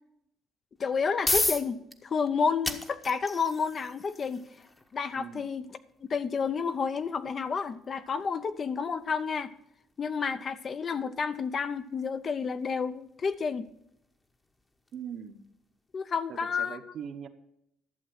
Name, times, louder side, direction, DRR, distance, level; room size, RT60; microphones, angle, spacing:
voice 1, 0.8-4.5 4.9-9.5 10.0-13.7 15.9-16.9, left 5 dB, 40° left, 12 dB, 0.7 m, -30 dB
sound 1, 0.8-15.6, left 2 dB, 20° left, 1.1 m, -38 dB
voice 2, 5.1-5.5 14.9-15.4 16.3-17.3, right 8 dB, 55° right, 8 dB, 1.0 m, -41 dB
12.0 x 7.3 x 6.3 m, 0.80 s
cardioid pair, 105°, 0 cm